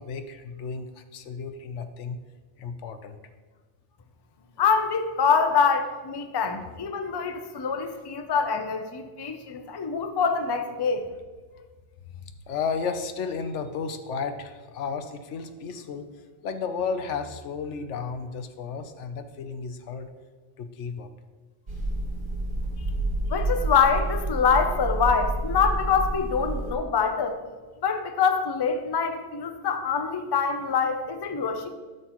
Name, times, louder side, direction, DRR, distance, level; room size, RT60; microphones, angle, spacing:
voice 1, 0.0-2.2 2.6-3.2 12.2-16.1 16.4-20.1 20.6-21.1, left 5 dB, 85° left, 8 dB, 1.0 m, -33 dB
voice 2, 4.6-11.0 23.3-27.4 27.8-31.7, left 6 dB, 30° left, 7 dB, 0.5 m, -25 dB
sound 1, 21.7-26.7, right 1 dB, 45° right, 1.6 m, -29 dB
12.5 x 6.6 x 3.0 m, 1.3 s
omnidirectional pair, 1.2 m